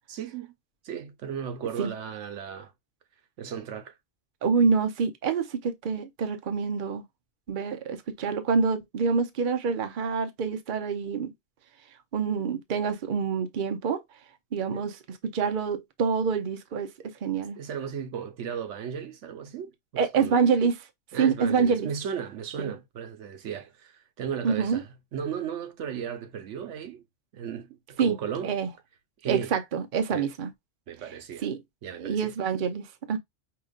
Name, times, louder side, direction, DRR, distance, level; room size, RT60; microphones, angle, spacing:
voice 1, 0.1-0.5 0.8-2.7 3.4-4.0 14.7-14.8 17.6-20.5 21.1-27.0 27.3-28.5 29.2-29.5 30.1-30.3 30.9-31.5 31.8-32.3, right 8 dB, 85° right, 1.1 m, -35 dB
voice 2, 4.4-7.0 7.5-11.3 12.1-14.0 14.5-16.9 17.2-17.6 20.0-20.8 21.2-21.9 24.4-24.8 28.0-28.2 28.4-28.7 29.3-30.5 31.4-31.6 32.0-33.2, right 5 dB, 50° right, 0.8 m, -26 dB
5.1 x 2.9 x 2.4 m
omnidirectional pair, 1.2 m